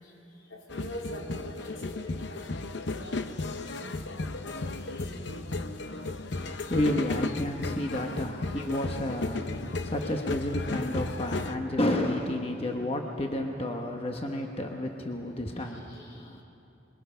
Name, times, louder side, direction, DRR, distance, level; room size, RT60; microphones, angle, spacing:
voice 1, 0.5-5.5 7.1-7.3 15.5-15.6, left 1 dB, 85° left, -2 dB, 3.6 m, -43 dB
sound 1, 0.7-11.6, left 3 dB, 65° left, 0.8 m, -35 dB
voice 2, 6.4-16.4, left 1 dB, 30° left, 2 dB, 1.1 m, -31 dB
26.0 x 22.0 x 5.7 m, 2.7 s
head